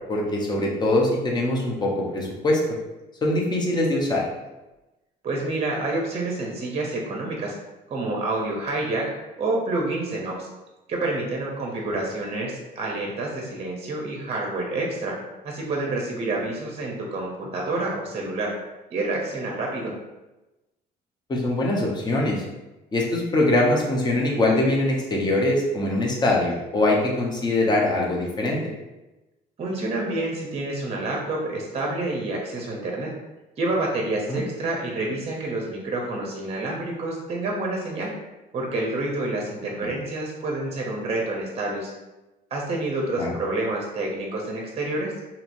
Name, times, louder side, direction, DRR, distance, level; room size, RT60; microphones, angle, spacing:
voice 1, 0.1-2.6 3.2-4.2 21.3-22.4 22.9-28.6 34.3-34.4 43.2-43.3, left 2 dB, 25° left, -2 dB, 0.7 m, -22 dB
voice 2, 5.2-7.5 7.9-9.0 9.4-10.5 10.9-15.1 15.4-18.5 18.9-19.9 29.6-33.1 33.6-38.1 38.5-41.9 42.5-45.1, right 2 dB, 35° right, -1 dB, 0.6 m, -28 dB
2.9 x 2.8 x 2.6 m, 1.0 s
cardioid pair, 110°, 17 cm